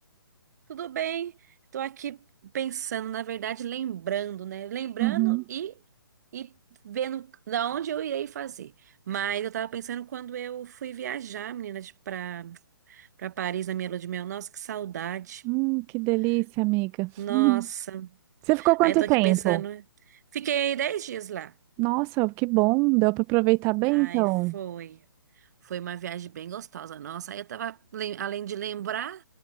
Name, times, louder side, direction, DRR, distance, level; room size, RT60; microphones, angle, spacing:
voice 1, 0.7-1.3 1.7-2.2 2.5-5.7 6.3-6.5 6.8-8.7 9.1-12.6 12.9-15.4 17.2-18.1 18.6-19.8 20.1-21.5 23.9-24.3 24.5-25.0 25.6-29.2, right 10 dB, 45° right, 1.1 m, -33 dB
voice 2, 5.0-5.4 15.4-17.7 18.5-19.6 21.8-24.6, right 27 dB, 20° right, 0.6 m, -23 dB
figure-of-eight pair, 135°, 12 cm